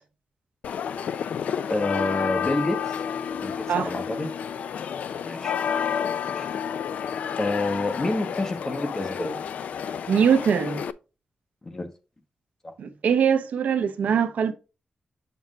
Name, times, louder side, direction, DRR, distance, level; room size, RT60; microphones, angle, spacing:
sound 1, 0.6-10.9, left 7 dB, 70° left, 0.4 m, -30 dB
voice 1, 1.7-3.0 3.3-4.3 5.2-5.6 6.3-6.5 7.4-9.4 11.6-11.9 12.6-12.7, left 2 dB, 20° left, 1.1 m, -28 dB
voice 2, 10.1-10.8 12.8-14.5, right 7 dB, 85° right, 0.7 m, -22 dB
7.7 x 5.7 x 2.3 m
wide cardioid pair, 160°, 3 cm